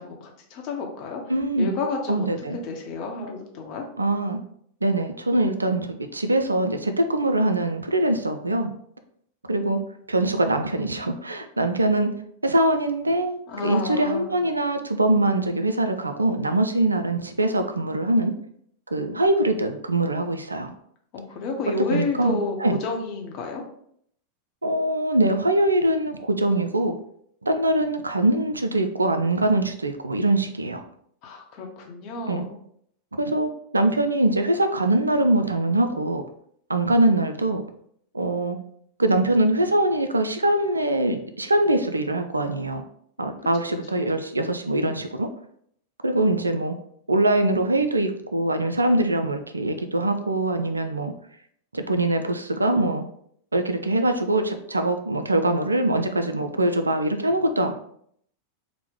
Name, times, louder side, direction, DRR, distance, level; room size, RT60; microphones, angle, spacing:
voice 1, 0.0-1.2 1.6-3.9 13.5-14.3 21.1-23.6 31.2-32.5 43.9-44.2, left 3 dB, 40° left, 1 dB, 0.7 m, -31 dB
voice 2, 1.3-1.7 2.1-2.6 4.0-4.4 4.8-8.7 9.5-9.8 10.1-12.1 12.4-18.3 18.9-20.7 21.9-22.8 24.6-27.0 27.4-30.8 32.3-32.5 33.1-36.2 36.7-37.6 38.1-38.6 39.0-42.8 43.2-45.3 46.0-46.7 47.1-51.1 51.7-53.0 53.5-57.7, right 1 dB, 80° right, 7 dB, 0.3 m, -23 dB
2.9 x 2.1 x 3.6 m, 0.67 s
figure-of-eight pair, 90°, 0 cm